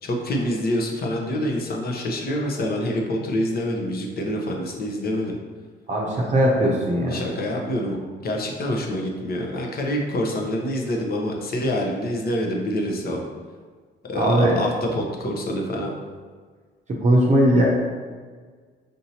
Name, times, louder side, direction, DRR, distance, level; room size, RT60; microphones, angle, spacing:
voice 1, 0.0-5.3 7.1-13.2 14.1-15.9, left 1 dB, 50° left, 1 dB, 0.8 m, -26 dB
voice 2, 5.9-7.2 14.1-14.6 16.9-17.6, right 1 dB, 35° right, -3 dB, 0.6 m, -19 dB
5.1 x 2.7 x 2.8 m, 1.5 s
cardioid pair, 90°, 20 cm